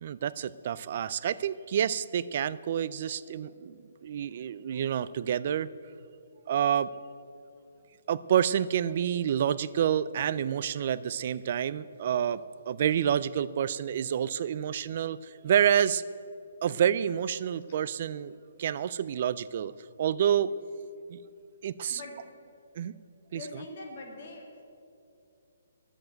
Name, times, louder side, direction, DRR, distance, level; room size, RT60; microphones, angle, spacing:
voice 1, 0.0-5.7 6.5-6.9 8.1-12.4 12.7-16.0 16.6-18.3 18.6-19.7 20.0-20.5 21.1-21.2 21.6-22.0 22.8-22.9 23.3-23.4, right 9 dB, 35° right, 17 dB, 0.3 m, -28 dB
voice 2, 23.3-24.5, left 2 dB, 40° left, 0 dB, 2.1 m, -43 dB
10.5 x 7.9 x 9.0 m, 2.5 s
hypercardioid pair, 175°, 0 cm